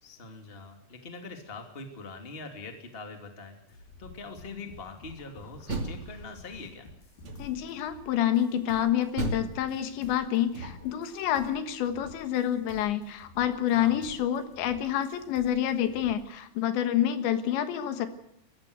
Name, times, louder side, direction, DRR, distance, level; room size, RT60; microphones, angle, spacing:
voice 1, 0.0-3.6 4.0-6.9 13.7-14.0, left 3 dB, 15° left, 4 dB, 2.0 m, -43 dB
sound 1, 3.7-16.3, left 3 dB, 50° left, 5.5 m, -52 dB
Door, 5.4-6.7 7.2-7.8 9.2-11.1, right 2 dB, 35° right, 2.8 m, -36 dB
voice 2, 7.4-18.1, left 11 dB, 80° left, 9 dB, 3.7 m, -28 dB
22.0 x 15.0 x 8.0 m, 0.77 s
omnidirectional pair, 5.1 m